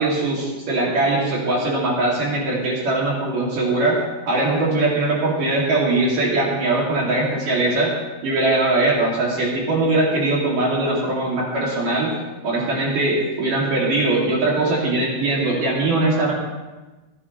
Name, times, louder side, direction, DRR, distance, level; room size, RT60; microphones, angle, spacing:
voice 1, 0.0-4.0 4.3-7.9 8.2-12.1 12.4-16.3, right 2 dB, 50° right, -4 dB, 3.8 m, -21 dB
26.5 x 9.8 x 3.3 m, 1.2 s
omnidirectional pair, 5.7 m